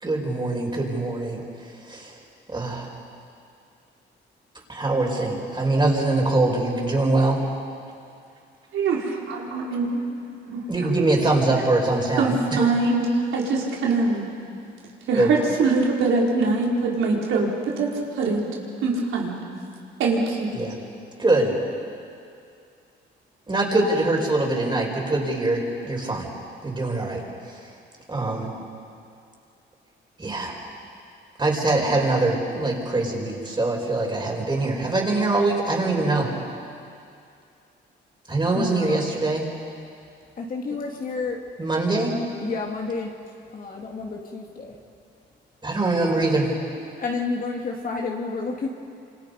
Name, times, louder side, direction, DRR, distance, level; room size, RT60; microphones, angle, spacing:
voice 1, 0.0-1.4 1.8-2.2 2.5-2.9 4.7-7.4 10.7-12.7 15.1-15.3 20.5-20.7 21.2-21.5 23.5-26.3 26.6-27.6 28.1-28.5 30.2-30.6 31.4-36.3 38.3-39.4 41.6-42.2 45.6-46.5, right 2 dB, 25° right, 0 dB, 5.5 m, -23 dB
voice 2, 8.7-10.1 10.5-10.6 12.2-14.3 15.1-18.4 18.8-19.4 20.0-20.5, right 3 dB, 85° right, -2 dB, 4.4 m, -23 dB
voice 3, 38.5-39.1 40.4-41.4 42.4-43.1 43.5-44.8 47.0-48.7, left 4 dB, 45° left, 0 dB, 2.7 m, -30 dB
28.0 x 26.5 x 5.4 m, 2.4 s
cardioid pair, 90°, 20 cm